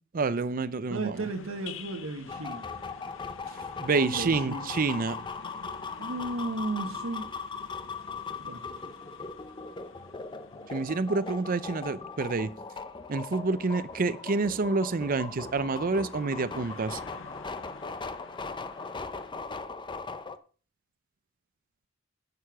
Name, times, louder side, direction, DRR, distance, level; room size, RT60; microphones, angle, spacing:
voice 1, 0.1-1.3 3.8-5.2 10.7-12.5 13.1-17.0, right 3 dB, 45° right, 0.5 m, -28 dB
voice 2, 0.9-2.7 3.9-4.8 6.0-7.3 8.4-8.7, right 2 dB, 90° right, 1.3 m, -34 dB
sound 1, 1.1-19.3, left 5 dB, 70° left, 0.8 m, -51 dB
sound 2, 2.3-20.4, left 4 dB, 25° left, 0.7 m, -39 dB
11.5 x 6.8 x 5.8 m
head